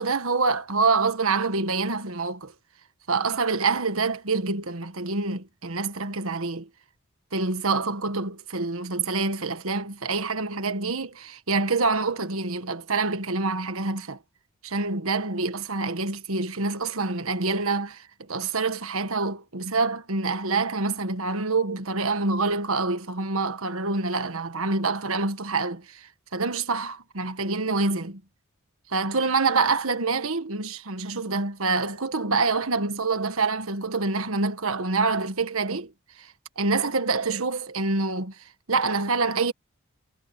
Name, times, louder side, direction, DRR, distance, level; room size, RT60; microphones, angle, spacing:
voice 1, 0.0-2.5 3.1-6.7 7.3-14.2 14.6-28.2 28.9-35.9 36.2-38.4 38.7-39.5, right 3 dB, 75° right, 1.5 m, -26 dB
head